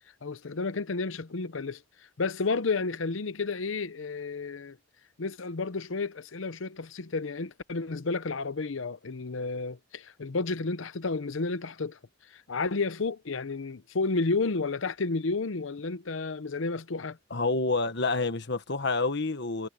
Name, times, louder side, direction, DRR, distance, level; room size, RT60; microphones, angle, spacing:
voice 1, 0.2-1.8 2.2-4.8 5.2-12.0 12.3-17.2, left 3 dB, 75° left, 0.8 m, -31 dB
voice 2, 17.3-19.7, left 3 dB, 60° left, 1.5 m, -28 dB
head